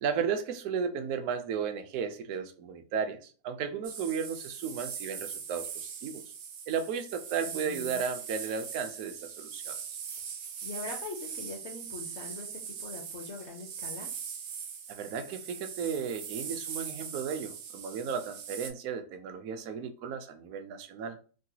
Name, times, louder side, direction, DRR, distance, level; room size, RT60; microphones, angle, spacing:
voice 1, 0.0-6.2 6.7-9.8 14.9-21.2, right 6 dB, 70° right, 7 dB, 0.9 m, -34 dB
sound 1, 3.8-18.7, right 7 dB, 85° right, 1.2 m, -41 dB
voice 2, 7.4-8.0 10.6-14.1, left 3 dB, 65° left, 1 dB, 0.7 m, -42 dB
3.8 x 2.2 x 2.7 m, 0.38 s
omnidirectional pair, 1.8 m